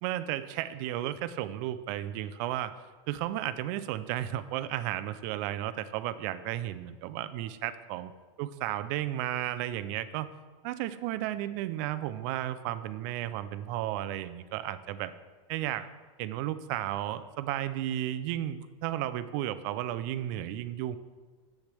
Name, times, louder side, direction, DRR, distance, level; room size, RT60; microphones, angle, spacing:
voice 1, 0.0-2.8 3.1-8.1 8.4-10.3 10.6-15.1 15.5-15.9 16.2-21.0, right 13 dB, 35° right, 13 dB, 0.4 m, -33 dB
10.5 x 7.7 x 3.3 m, 1.3 s
supercardioid pair, 170°, 17 cm